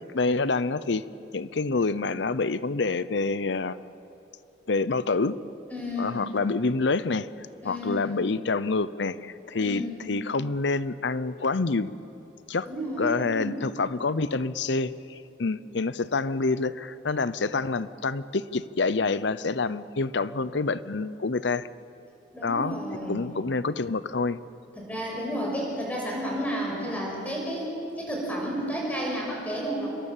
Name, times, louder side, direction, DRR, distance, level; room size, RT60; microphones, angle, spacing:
voice 1, 0.1-1.0 1.3-3.8 4.7-5.4 6.0-7.3 7.6-11.9 12.5-12.7 13.0-14.9 15.4-21.7 22.4-22.8 23.1-24.4, left 3 dB, 65° left, 16 dB, 0.7 m, -27 dB
voice 2, 5.7-6.3 7.6-8.1 9.6-10.1 12.6-13.6 22.3-23.2 24.8-27.7 28.0-29.9, equal, 10° left, -3 dB, 6.8 m, -31 dB
27.0 x 22.5 x 7.4 m, 2.8 s
head